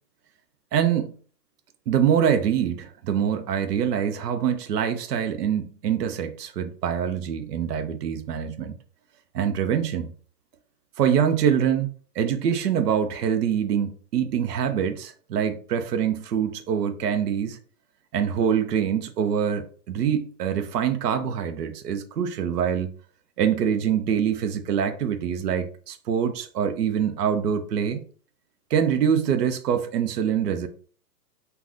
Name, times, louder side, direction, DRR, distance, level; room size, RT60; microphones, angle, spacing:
voice 1, 0.7-1.2 1.9-8.7 9.3-10.1 11.0-17.6 18.1-22.9 23.4-28.0 28.7-30.7, right 8 dB, 75° right, 0.6 m, -24 dB
3.5 x 2.3 x 2.4 m
hypercardioid pair, 175°, 48 cm